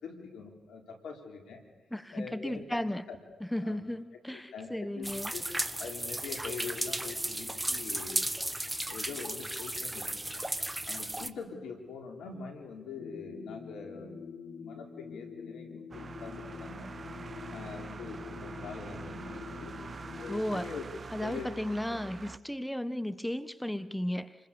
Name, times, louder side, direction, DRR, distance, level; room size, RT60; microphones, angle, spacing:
voice 1, 0.0-1.6 2.1-2.6 3.1-3.2 3.6-3.8 4.3-5.4 5.8-8.4 8.9-10.4 10.9-14.2 14.6-16.9 17.5-19.7 20.2-20.8 21.2-21.5, left 5 dB, 80° left, 3 dB, 4.1 m, -43 dB
voice 2, 1.9-3.1 3.4-5.3 20.3-20.7 21.1-24.4, left 1 dB, 5° left, 14 dB, 1.2 m, -34 dB
sound 1, 5.0-11.3, right 1 dB, 15° right, 1.6 m, -35 dB
sound 2, 12.9-20.4, left 5 dB, 65° left, 3.6 m, -45 dB
sound 3, 15.9-22.4, right 5 dB, 50° right, 0.9 m, -45 dB
28.0 x 21.0 x 7.0 m, 1.3 s
supercardioid pair, 40°, 0 cm